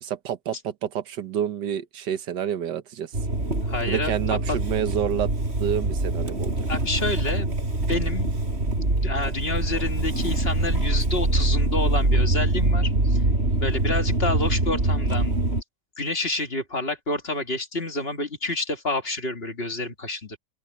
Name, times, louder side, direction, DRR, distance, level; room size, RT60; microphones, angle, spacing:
voice 1, 0.0-3.1 3.9-5.3 5.6-6.6, right 9 dB, 85° right, 1.7 m, -28 dB
Motor vehicle (road) / Engine starting, 3.1-15.6, right 2 dB, 35° right, 5.0 m, -24 dB
voice 2, 3.7-4.6 6.7-8.3 8.7-13.2 13.6-15.4 16.0-20.4, left 2 dB, 35° left, 2.2 m, -29 dB
open air
omnidirectional pair, 1.8 m